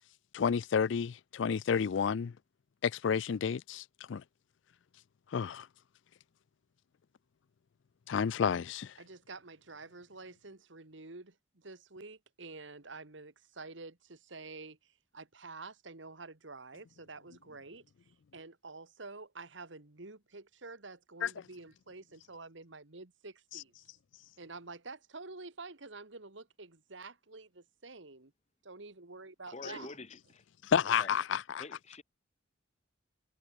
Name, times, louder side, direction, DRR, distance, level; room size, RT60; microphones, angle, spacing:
voice 1, 0.3-2.3 2.8-4.2 5.3-5.7 8.1-8.9 21.2-21.3 30.7-31.6, left 7 dB, 65° left, 0.4 m, -30 dB
voice 2, 9.0-23.7 24.4-28.3 28.6-30.0, right 3 dB, 65° right, 1.9 m, -49 dB
voice 3, 29.5-30.4 31.0-31.1 31.6-32.0, left 3 dB, 35° left, 1.4 m, -46 dB
head